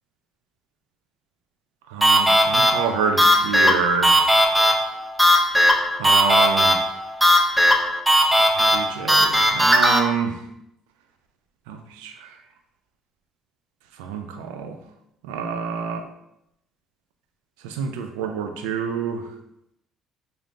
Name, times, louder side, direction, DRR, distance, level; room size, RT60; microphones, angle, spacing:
voice 1, 1.9-4.2 6.0-6.8 8.5-10.4 11.7-12.3 14.0-14.8 15.2-16.1 17.6-19.2, right 6 dB, 80° right, 6 dB, 0.3 m, -27 dB
sound 1, 2.0-10.0, equal, 10° right, 0.5 m, -18 dB
3.3 x 2.6 x 2.6 m, 0.81 s
hypercardioid pair, 55°, 0 cm